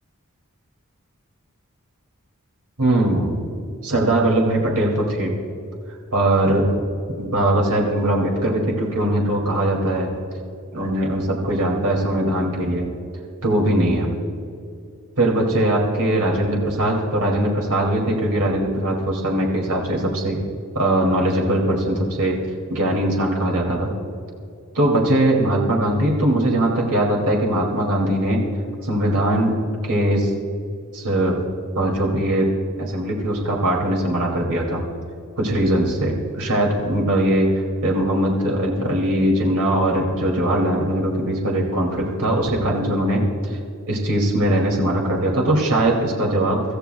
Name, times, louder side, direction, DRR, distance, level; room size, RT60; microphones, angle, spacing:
voice 1, 2.8-3.4 3.8-5.3 6.1-6.8 7.2-10.1 10.7-12.9 13.4-14.1 15.2-20.4 20.7-22.4 22.7-23.9 24.7-28.4 28.8-29.5 29.8-30.3 30.9-31.4 31.8-32.5 32.8-34.8 35.4-37.5 37.8-43.2 43.9-46.6, right 1 dB, 85° right, -1 dB, 2.5 m, -20 dB
24.5 x 14.5 x 2.3 m, 2.4 s
head